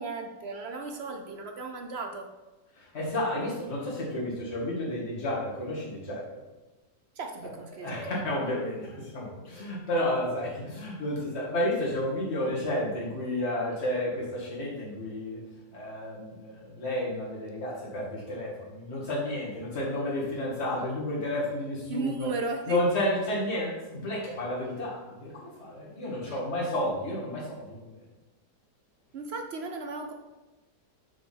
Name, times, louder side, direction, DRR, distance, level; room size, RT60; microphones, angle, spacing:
voice 1, 0.0-2.3 7.2-8.0 21.9-22.8 26.2-26.4 29.1-30.1, right 4 dB, 65° right, 4 dB, 0.6 m, -35 dB
voice 2, 2.8-6.4 7.8-15.4 15.7-22.3 22.7-27.9, left 1 dB, 40° left, -5 dB, 2.2 m, -31 dB
5.9 x 4.9 x 5.5 m, 1.1 s
omnidirectional pair, 1.8 m